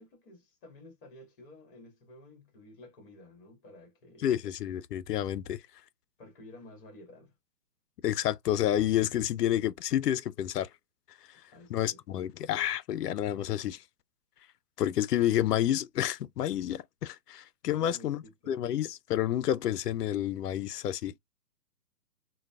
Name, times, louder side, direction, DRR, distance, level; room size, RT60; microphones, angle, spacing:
voice 1, 0.0-4.4 6.2-7.3 11.5-12.0 17.8-18.6, left 1 dB, 35° left, 1.8 m, -52 dB
voice 2, 4.2-5.6 8.0-10.7 11.7-13.8 14.8-21.2, left 11 dB, 80° left, 0.6 m, -29 dB
3.9 x 2.2 x 2.3 m
hypercardioid pair, 150°, 47 cm